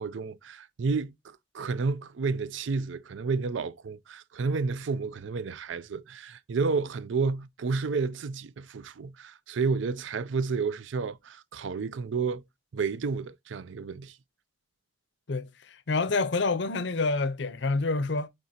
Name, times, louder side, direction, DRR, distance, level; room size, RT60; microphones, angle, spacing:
voice 1, 0.0-12.4 12.7-14.2, right 4 dB, 80° right, 0.4 m, -31 dB
voice 2, 15.3-18.3, left 3 dB, 70° left, 0.6 m, -28 dB
8.9 x 3.9 x 2.7 m
head